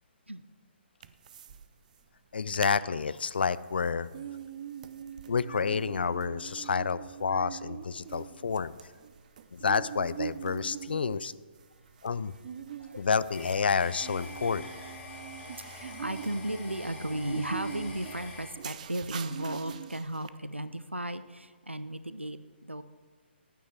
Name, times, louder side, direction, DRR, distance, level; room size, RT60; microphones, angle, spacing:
sound 1, 1.0-1.6 1.9-2.0 2.4-2.8 3.2-20.3, right 8 dB, 40° right, 0.5 m, -43 dB
voice 1, 2.3-4.1 5.3-8.7 9.5-11.3 12.0-12.3 13.0-14.7, left 5 dB, 60° left, 17 dB, 0.4 m, -29 dB
voice 2, 12.7-13.1 15.1-22.8, right 1 dB, 90° right, 13 dB, 0.5 m, -36 dB
sound 2, 13.3-18.5, left 2 dB, 20° left, 2.9 m, -45 dB
9.4 x 8.9 x 4.5 m, 1.5 s
figure-of-eight pair, 130°, 6 cm